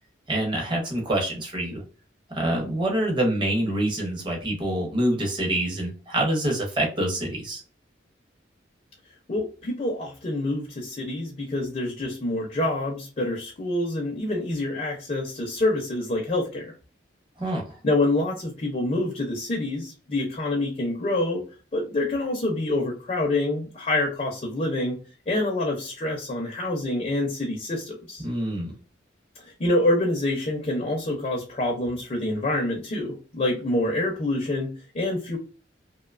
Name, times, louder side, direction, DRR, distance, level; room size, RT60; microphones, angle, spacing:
voice 1, 0.3-1.8 2.3-7.6 17.4-17.6 28.2-28.7, right 1 dB, 25° right, 0 dB, 0.6 m, -26 dB
voice 2, 9.3-16.7 17.8-21.4 21.7-25.0 25.3-28.3 29.4-35.4, left 2 dB, 35° left, 0 dB, 0.4 m, -26 dB
2.7 x 2.2 x 2.3 m, 0.36 s
head